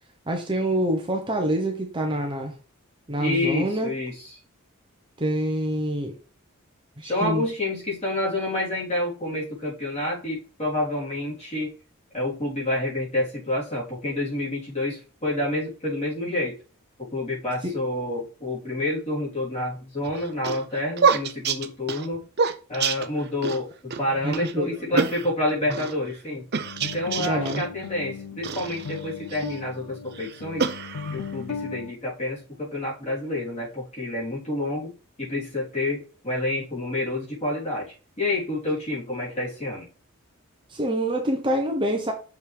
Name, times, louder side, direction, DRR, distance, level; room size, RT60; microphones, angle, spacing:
voice 1, 0.3-2.5 3.1-3.9 5.2-6.1 7.0-7.4 17.6-17.7 24.2-25.1 27.2-27.6 40.7-42.1, right 1 dB, 20° right, 2 dB, 1.0 m, -26 dB
voice 2, 3.2-4.4 7.0-11.7 12.1-16.6 17.0-22.2 22.7-26.5 26.8-30.7 31.1-34.9 35.2-39.8, left 1 dB, 30° left, -5 dB, 3.7 m, -28 dB
sound 1, 20.0-23.6 23.9-24.0 24.3-24.5 25.0-25.9 26.5-27.7 28.4-29.6 30.1-31.3, right 5 dB, 50° right, 0.7 m, -27 dB
sound 2, 26.6-31.9, left 5 dB, 90° left, 0.5 m, -37 dB
6.5 x 5.3 x 3.4 m, 0.37 s
head